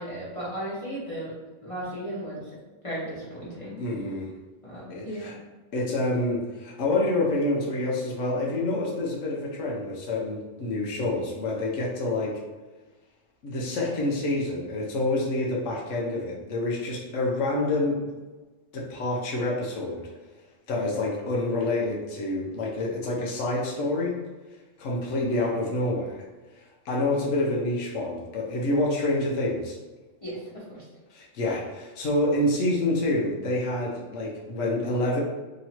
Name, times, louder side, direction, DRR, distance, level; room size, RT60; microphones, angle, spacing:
voice 1, 0.0-1.3 1.6-2.4 2.8-3.8 4.6-5.3 30.2-30.4 30.7-30.8, right 1 dB, 30° left, -9 dB, 1.1 m, -35 dB
voice 2, 3.8-4.3 4.9-5.3 5.7-12.4 13.4-18.0 18.7-20.1 20.7-24.2 24.8-26.2 26.6-29.8 31.1-35.2, left 2 dB, 75° left, -3 dB, 1.1 m, -27 dB
3.0 x 2.9 x 4.2 m, 1.3 s
omnidirectional pair, 1.3 m